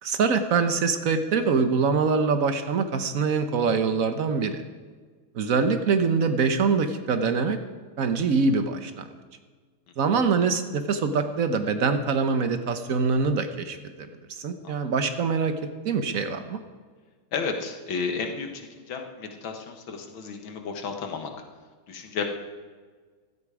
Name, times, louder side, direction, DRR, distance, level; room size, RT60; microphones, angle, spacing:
voice 1, 0.0-4.6 5.3-7.6 8.0-9.1 10.0-15.5 15.8-16.6, right 5 dB, 50° right, 8 dB, 1.2 m, -24 dB
voice 2, 17.3-21.3 21.9-22.2, left 5 dB, 70° left, 4 dB, 2.1 m, -32 dB
16.0 x 12.5 x 5.0 m, 1.5 s
omnidirectional pair, 2.3 m